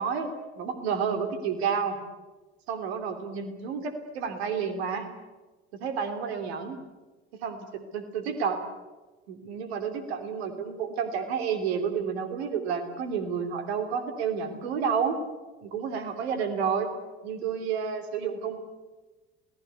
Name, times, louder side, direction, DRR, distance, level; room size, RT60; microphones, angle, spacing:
voice 1, 0.0-2.0 2.7-5.1 5.8-6.8 7.3-8.6 9.3-15.2 15.6-16.9 17.2-18.6, right 6 dB, 75° right, 7 dB, 3.0 m, -30 dB
28.0 x 19.0 x 8.2 m, 1.2 s
figure-of-eight pair, 55°, 32 cm